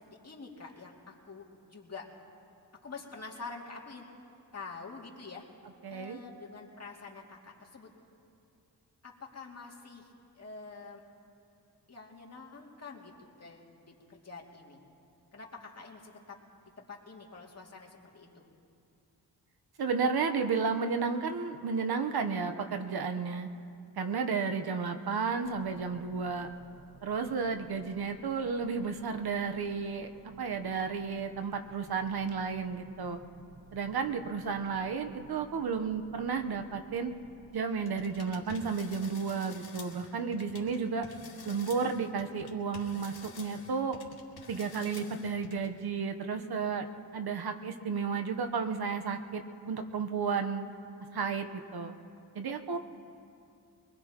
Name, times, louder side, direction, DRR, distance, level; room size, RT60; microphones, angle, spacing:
voice 1, 0.0-1.4 1.7-2.1 2.8-4.1 4.5-5.5 5.9-7.9 9.0-11.0 11.9-14.8 15.3-16.4 16.8-18.4, left 4 dB, 40° left, -2 dB, 2.5 m, -47 dB
voice 2, 5.8-6.2 19.8-23.5 24.0-26.5 27.0-30.1 30.4-33.2 33.7-37.1 37.5-41.0 41.4-44.0 44.5-46.9 47.1-50.7 51.1-51.5 51.7-51.9 52.3-52.8, right 5 dB, 65° right, 6 dB, 1.0 m, -32 dB
sound 1, 25.4-37.6, right 1 dB, 15° right, 4.5 m, -58 dB
sound 2, 37.8-40.8 41.0-45.7, left 4 dB, 65° left, 2.3 m, -49 dB
24.0 x 20.0 x 3.0 m, 2.6 s
cardioid pair, 80°, 40 cm